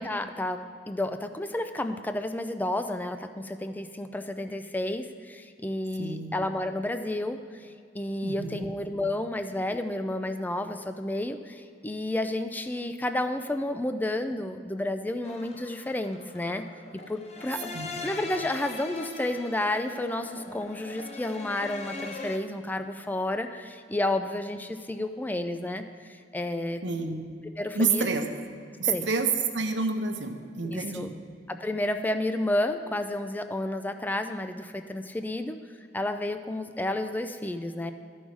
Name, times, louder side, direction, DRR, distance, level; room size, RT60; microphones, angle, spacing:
voice 1, 0.0-7.7 7.9-16.7 17.1-17.7 18.0-25.8 26.3-26.8 27.6-28.1 28.8-29.1 30.7-31.1 31.5-35.6 35.9-37.9, left 1 dB, 10° left, 8 dB, 0.3 m, -31 dB
voice 2, 6.0-6.3 8.2-8.7 17.7-18.1 26.8-27.2 27.7-28.2 28.8-31.1, right 4 dB, 70° right, 5 dB, 0.8 m, -29 dB
sound 1, 15.2-22.4, left 3 dB, 35° left, 0.7 m, -41 dB
12.5 x 5.4 x 4.7 m, 2.3 s
head